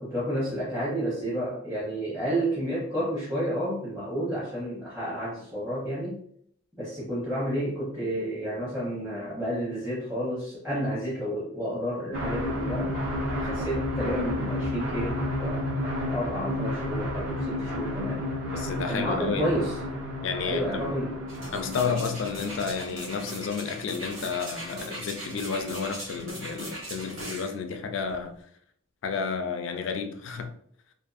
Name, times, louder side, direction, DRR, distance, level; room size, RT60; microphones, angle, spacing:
voice 1, 0.0-6.2 6.8-12.9 13.4-15.6 16.1-18.2 18.9-19.7 20.4-21.2, equal, 10° right, 0.7 m, -30 dB
sound 1, 12.1-23.3, left 1 dB, 50° right, 0.8 m, -31 dB
voice 2, 18.5-19.6 20.2-20.9 21.5-28.3 29.0-30.5, left 5 dB, 65° left, 0.4 m, -31 dB
sound 2, 21.3-27.5 28.1-28.2, equal, 80° right, 1.0 m, -39 dB
2.5 x 2.5 x 2.4 m
head